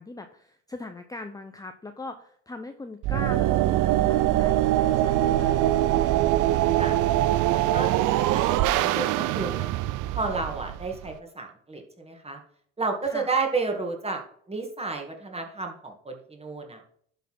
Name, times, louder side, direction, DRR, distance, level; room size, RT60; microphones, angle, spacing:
voice 1, 0.0-6.2 13.0-13.3, left 2 dB, 10° left, 6 dB, 0.7 m, -40 dB
sound 1, 3.0-11.1, right 14 dB, 60° right, 0.5 m, -23 dB
voice 2, 7.5-9.7 10.1-12.4 12.8-14.2 14.5-16.8, right 4 dB, 15° right, 2 dB, 2.2 m, -31 dB
11.5 x 4.1 x 4.3 m, 0.62 s
hypercardioid pair, 70°, 35 cm